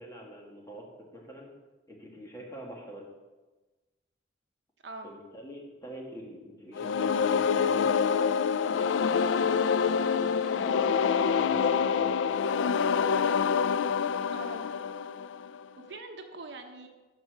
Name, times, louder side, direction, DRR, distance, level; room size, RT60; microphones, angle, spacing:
voice 1, 0.0-1.5 1.9-3.1 5.0-8.3 11.0-12.4, equal, 20° left, -1 dB, 1.9 m, -45 dB
sound 1, 6.7-15.6, left 6 dB, 90° left, 0.3 m, -26 dB
voice 2, 10.4-11.9 14.3-14.7 15.8-16.9, right 2 dB, 70° right, 4 dB, 1.1 m, -44 dB
12.5 x 4.5 x 6.5 m, 1.2 s
head